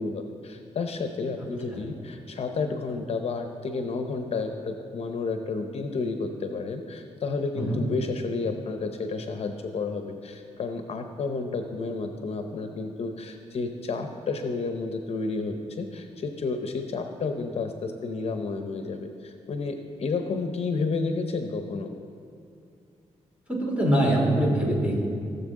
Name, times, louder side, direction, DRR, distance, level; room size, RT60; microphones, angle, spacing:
voice 1, 0.0-21.9, left 4 dB, 55° left, 6 dB, 0.7 m, -31 dB
voice 2, 23.5-25.1, right 1 dB, 10° right, -3 dB, 2.7 m, -23 dB
17.5 x 7.0 x 3.7 m, 2.4 s
cardioid pair, 105°, 12 cm